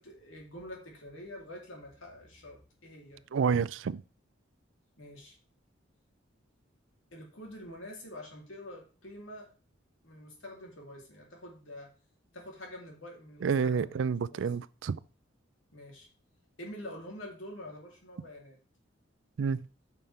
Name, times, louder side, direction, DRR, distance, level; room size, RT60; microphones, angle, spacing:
voice 1, 0.0-3.2 5.0-5.4 7.1-9.5 10.0-11.9 12.3-14.0 14.3-14.5 15.7-16.1 16.6-18.6, left 1 dB, 80° left, 3.0 m, -46 dB
voice 2, 3.3-4.0 13.4-15.0 19.4-19.7, right 6 dB, 70° right, 0.4 m, -29 dB
9.3 x 6.0 x 3.3 m
head